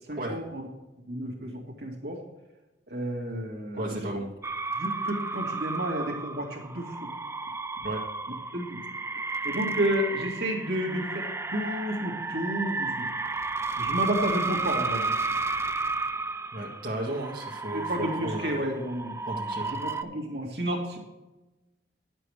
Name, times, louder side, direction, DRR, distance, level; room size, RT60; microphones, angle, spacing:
voice 1, 0.1-0.7 1.1-2.2 2.9-3.9 4.7-7.1 8.5-8.8 9.4-13.1 13.8-15.1 17.7-19.2 19.7-21.0, equal, 65° right, 0 dB, 2.2 m, -31 dB
voice 2, 3.7-4.3 7.8-8.0 16.5-18.7 19.3-19.8, right 1 dB, 50° right, -5 dB, 2.0 m, -34 dB
sound 1, 4.4-20.0, right 3 dB, 15° right, 0.4 m, -32 dB
10.5 x 7.6 x 4.9 m, 1.1 s
head